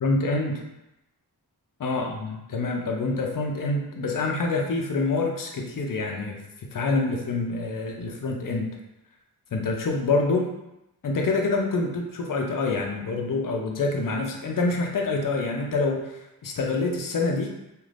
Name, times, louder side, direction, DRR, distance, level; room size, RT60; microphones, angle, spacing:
voice 1, 0.0-0.6 1.8-6.4 6.7-8.7 9.5-10.5 11.0-17.5, left 3 dB, 55° left, 1 dB, 0.6 m, -26 dB
3.3 x 2.5 x 2.5 m, 0.90 s
wide cardioid pair, 90°, 39 cm